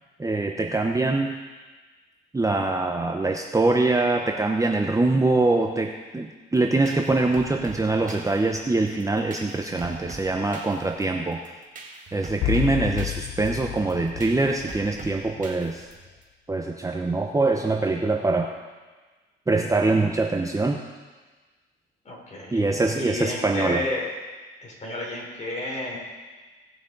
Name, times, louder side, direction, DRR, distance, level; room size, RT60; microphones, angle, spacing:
voice 1, 0.2-1.4 2.3-11.4 12.1-15.9 16.5-18.5 19.5-20.8 22.5-23.8, right 2 dB, 15° right, 2 dB, 0.8 m, -23 dB
sound 1, 6.6-16.2, right 3 dB, 40° right, 1.6 m, -44 dB
sound 2, 12.4-15.3, left 16 dB, 80° left, 0.4 m, -30 dB
voice 2, 22.0-22.6 23.0-24.0 24.6-26.0, left 1 dB, 35° left, -2 dB, 4.0 m, -31 dB
18.0 x 6.3 x 4.0 m, 1.3 s
cardioid pair, 90°, 20 cm